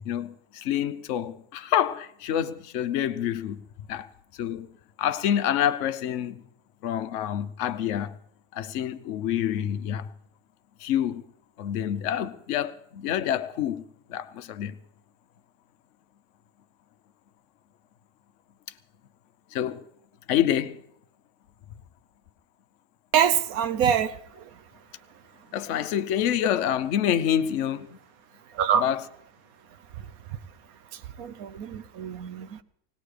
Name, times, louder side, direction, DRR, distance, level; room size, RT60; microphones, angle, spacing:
voice 1, 0.0-3.6 3.9-4.1 4.4-4.7 5.0-6.4 6.8-8.1 8.5-10.1 10.8-11.2 11.6-13.8 14.1-14.8 19.5-19.8 20.3-20.8 25.5-27.9 28.7-29.0, left 10 dB, 60° left, 0.9 m, -27 dB
voice 2, 23.1-24.2 28.6-28.9 31.2-32.6, right 8 dB, 70° right, 1.2 m, -24 dB
20.0 x 18.0 x 3.3 m
omnidirectional pair, 1.7 m